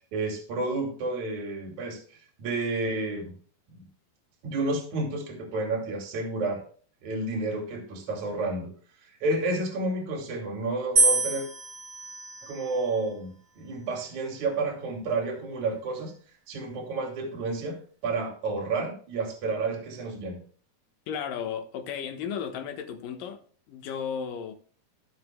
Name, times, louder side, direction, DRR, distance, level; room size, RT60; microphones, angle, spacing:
voice 1, 0.1-2.0 2.4-3.3 3.7-3.8 4.4-6.6 7.0-8.7 9.2-11.5 12.4-16.1 16.5-20.4, right 3 dB, 55° right, 3.8 m, -30 dB
sound 1, 11.0-13.2 14.0-14.5, right 3 dB, 25° right, 3.2 m, -27 dB
voice 2, 21.1-24.5, left 7 dB, 70° left, 2.8 m, -34 dB
16.0 x 8.0 x 2.3 m
omnidirectional pair, 4.3 m